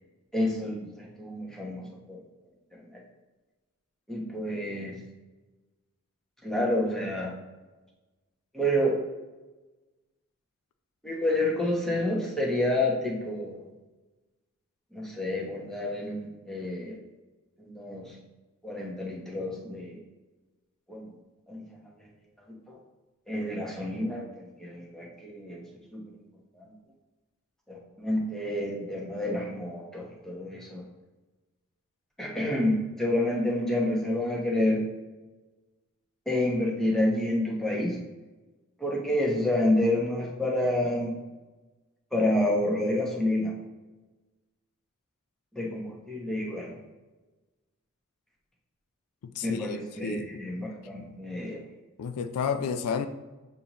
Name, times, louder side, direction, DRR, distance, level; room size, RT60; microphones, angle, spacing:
voice 1, 0.3-2.2 2.9-3.0 4.1-5.0 6.4-7.3 8.5-9.0 11.0-13.7 14.9-17.0 17.6-18.1 18.6-20.0 20.9-21.1 21.5-21.8 22.7-22.8 23.3-25.6 25.9-26.2 26.6-26.7 27.7-30.8 32.2-34.8 36.3-38.0 38.8-41.2 42.1-43.5 45.5-46.7 49.4-51.6, left 1 dB, ahead, -3 dB, 0.9 m, -29 dB
voice 2, 49.2-50.4 52.0-53.1, left 6 dB, 80° left, 9 dB, 0.3 m, -31 dB
6.6 x 2.7 x 2.9 m, 1.2 s
head